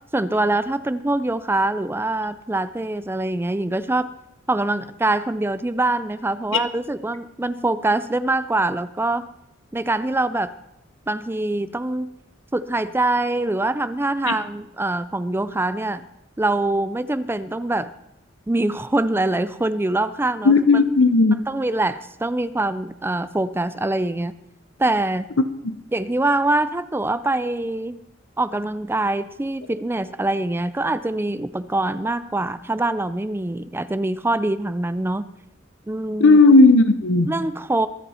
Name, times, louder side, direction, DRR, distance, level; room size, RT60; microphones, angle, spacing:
voice 1, 0.1-4.1 4.5-9.3 9.7-10.5 11.1-12.1 12.5-16.1 16.4-17.9 18.5-20.8 21.5-24.3 24.8-25.3 25.9-28.0 28.4-35.3 35.9-36.4 37.3-37.9, right 2 dB, 10° right, 0.4 m, -24 dB
voice 2, 20.5-21.4 36.2-37.3, left 3 dB, 75° left, 0.8 m, -14 dB
23.0 x 8.3 x 4.3 m
head